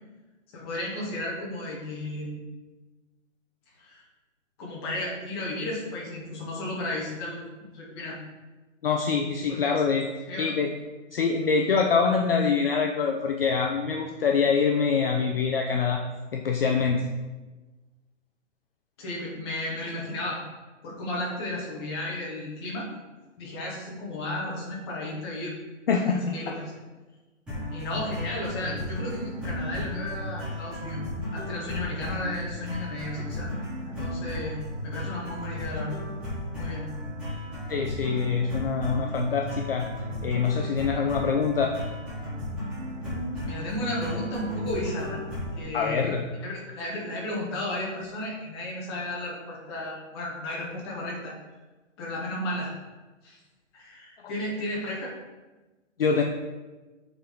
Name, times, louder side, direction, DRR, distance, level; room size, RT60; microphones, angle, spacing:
voice 1, 0.5-2.4 3.8-4.0 4.6-7.5 7.7-8.2 9.5-9.8 10.3-10.5 19.0-20.4 20.8-22.9 23.4-25.5 26.1-26.7 27.7-31.0 31.3-33.5 33.8-34.5 34.8-36.0 36.6-36.9 43.3-45.2 45.6-46.1 46.4-51.3 52.0-52.7 53.2-53.4 53.7-55.1, left 1 dB, 20° left, -4 dB, 1.1 m, -33 dB
voice 2, 8.8-10.0 10.4-10.7 11.1-16.0 16.3-17.1 25.9-26.2 37.7-39.9 40.2-41.7 45.7-46.2 56.0-56.2, left 5 dB, 50° left, 3 dB, 0.5 m, -24 dB
sound 1, 27.5-45.6, left 1 dB, 5° right, 1.0 m, -34 dB
7.0 x 3.8 x 3.5 m, 1.2 s
hypercardioid pair, 170°, 38 cm